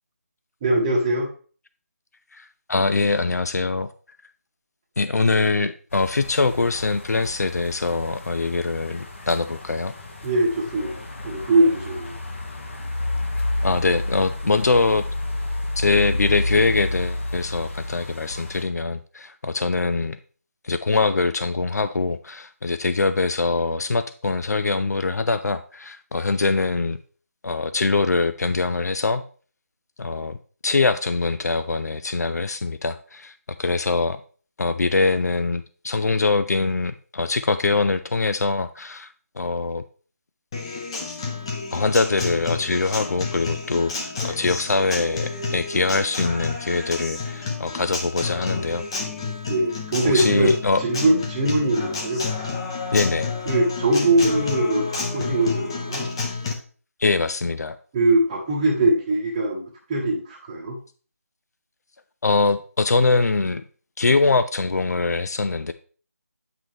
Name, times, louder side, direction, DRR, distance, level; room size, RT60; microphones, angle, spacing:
voice 1, 0.6-1.3 10.2-12.1 49.5-50.5 50.8-52.2 53.5-56.1 57.9-59.6 59.9-60.8, right 1 dB, 15° right, -5 dB, 1.0 m, -21 dB
voice 2, 2.3-3.9 5.0-9.9 13.4-15.1 15.8-20.2 20.6-27.0 27.4-29.2 30.0-30.4 30.6-33.3 33.6-34.2 34.6-39.8 41.7-48.9 50.0-50.8 52.9-53.3 57.0-57.8 62.2-63.6 64.0-65.7, left 3 dB, 80° left, 11 dB, 0.6 m, -23 dB
sound 1, 5.9-18.6, left 2 dB, 50° left, 1.7 m, -30 dB
Acoustic guitar, 40.5-56.5, left 4 dB, 20° left, 0.8 m, -30 dB
9.1 x 6.0 x 3.2 m, 0.40 s
figure-of-eight pair, 170°, 9 cm